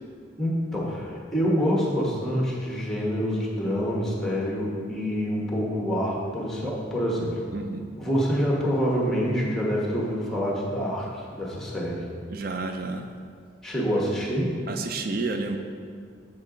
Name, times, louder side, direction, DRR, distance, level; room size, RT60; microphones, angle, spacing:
voice 1, 0.4-7.4 7.9-12.1 13.6-14.5, equal, ahead, -4 dB, 1.2 m, -26 dB
voice 2, 7.5-7.8 12.3-13.1 14.7-15.6, right 3 dB, 50° right, 5 dB, 0.5 m, -30 dB
7.4 x 6.4 x 3.8 m, 2.1 s
head